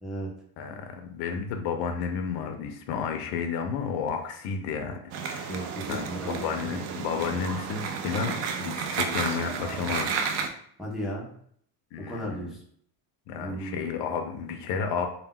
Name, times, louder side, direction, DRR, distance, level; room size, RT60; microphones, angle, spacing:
voice 1, 0.6-5.0 5.3-5.6 5.9-10.2 11.9-12.6 13.3-15.1, left 6 dB, 65° left, 5 dB, 0.5 m, -32 dB
sound 1, 5.1-10.5, right 6 dB, 70° right, 0.5 m, -32 dB
voice 2, 5.5-6.7 10.8-11.3 12.0-12.6 13.3-13.9, right 1 dB, ahead, -4 dB, 0.4 m, -35 dB
2.2 x 2.1 x 3.5 m, 0.63 s
cardioid pair, 145°, 44 cm